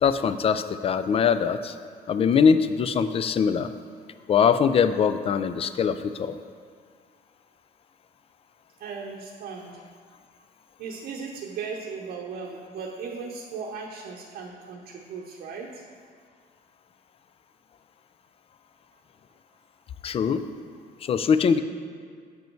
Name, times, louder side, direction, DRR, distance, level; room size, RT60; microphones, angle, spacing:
voice 1, 0.0-1.8 2.1-3.7 4.3-6.4 20.0-20.4 21.0-21.6, left 6 dB, 35° left, 11 dB, 0.4 m, -22 dB
voice 2, 8.8-9.8 10.8-15.8, right 5 dB, 65° right, -1 dB, 0.8 m, -37 dB
7.9 x 5.3 x 4.5 m, 2.1 s
cardioid pair, 110°, 17 cm